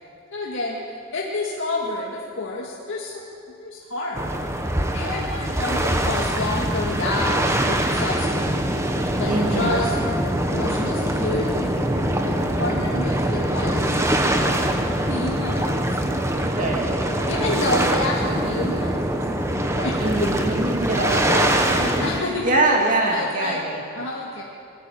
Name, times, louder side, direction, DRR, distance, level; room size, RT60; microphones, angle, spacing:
voice 1, 0.3-0.8 1.1-3.3 3.6-4.3 4.9-8.7 9.2-9.9 10.4-11.8 12.2-14.7 15.0-15.9 17.3-19.2 19.7-20.4 21.1-21.6 21.9-22.5 23.1-23.6 23.9-24.4, left 2 dB, 55° left, -3 dB, 2.2 m, -29 dB
sound 1, 4.1-22.2, right 1 dB, 10° right, 1.2 m, -23 dB
voice 2, 9.3-9.8 16.5-16.9 20.0-24.0, right 2 dB, 35° right, 0 dB, 3.0 m, -24 dB
21.0 x 14.0 x 8.8 m, 2.5 s
head